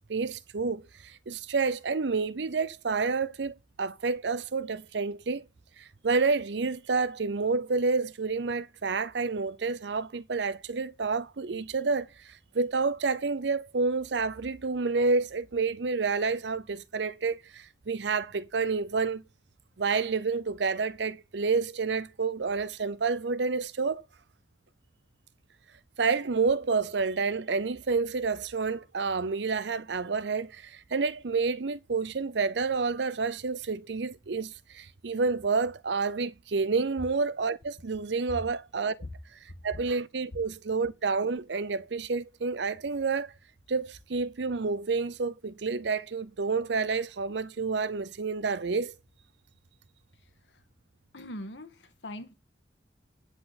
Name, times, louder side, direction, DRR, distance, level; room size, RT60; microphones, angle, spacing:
voice 1, 0.0-5.4 5.8-19.2 19.8-24.0 26.0-38.9 39.6-43.3 43.7-48.9, right 4 dB, 75° right, 0.6 m, -29 dB
voice 2, 51.1-52.3, left 1 dB, 85° left, 1.7 m, -41 dB
9.6 x 7.8 x 4.1 m
head